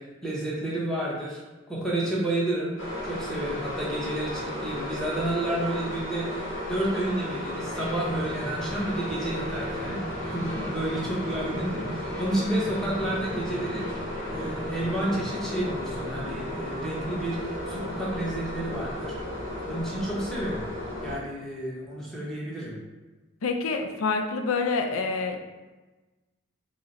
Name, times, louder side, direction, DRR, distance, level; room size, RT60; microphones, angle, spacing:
voice 1, 0.0-1.4 1.7-2.7 3.0-19.2 19.6-20.6 21.0-22.7, right 1 dB, ahead, -6 dB, 0.7 m, -31 dB
sound 1, 2.8-21.2, left 1 dB, 65° left, 1.1 m, -34 dB
sound 2, 7.7-18.3, right 1 dB, 35° left, 0.9 m, -39 dB
voice 2, 23.4-25.4, left 4 dB, 85° left, 5 dB, 0.4 m, -27 dB
3.8 x 2.0 x 4.0 m, 1.2 s
head